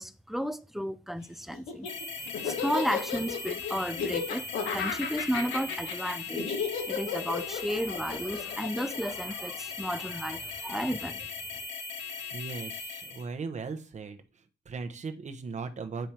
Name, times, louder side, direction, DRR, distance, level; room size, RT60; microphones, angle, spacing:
voice 1, 0.0-1.9 2.4-6.5 6.9-11.3, equal, ahead, 0.4 m, -33 dB
Laughter, 1.5-9.9, left 6 dB, 90° left, 1.4 m, -34 dB
sound 1, 1.8-13.3, left 4 dB, 65° left, 1.7 m, -39 dB
voice 2, 12.3-14.2 14.7-16.1, right 4 dB, 35° right, 1.0 m, -37 dB
9.0 x 3.4 x 4.4 m
cardioid pair, 90°, 20 cm